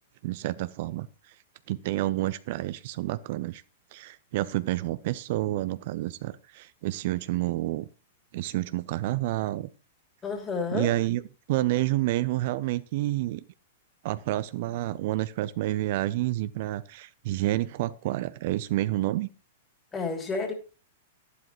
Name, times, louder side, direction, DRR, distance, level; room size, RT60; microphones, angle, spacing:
voice 1, 0.2-1.3 1.7-3.6 3.9-7.9 8.3-9.7 10.7-11.2 11.5-13.4 14.0-19.3, right 16 dB, 50° right, 15 dB, 0.5 m, -29 dB
voice 2, 10.2-10.9 19.9-20.5, left 4 dB, 20° left, 3 dB, 2.8 m, -30 dB
12.0 x 11.5 x 3.0 m, 0.35 s
figure-of-eight pair, 100°, 0 cm